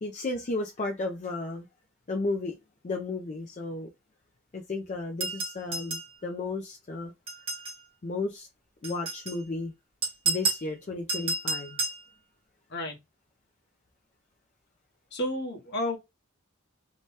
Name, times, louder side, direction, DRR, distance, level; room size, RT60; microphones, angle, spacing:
voice 1, 0.0-1.7 2.1-2.6 2.8-3.9 4.5-7.1 8.0-8.5 8.8-9.7 10.3-11.8, left 3 dB, 35° left, 0.4 m, -33 dB
sound 1, 5.2-6.1 7.3-7.8 8.8-9.4 10.0-10.7 11.1-12.0, right 3 dB, 30° right, 0.8 m, -31 dB
voice 2, 15.1-16.0, left 1 dB, 55° left, 1.0 m, -31 dB
2.8 x 2.2 x 3.1 m
head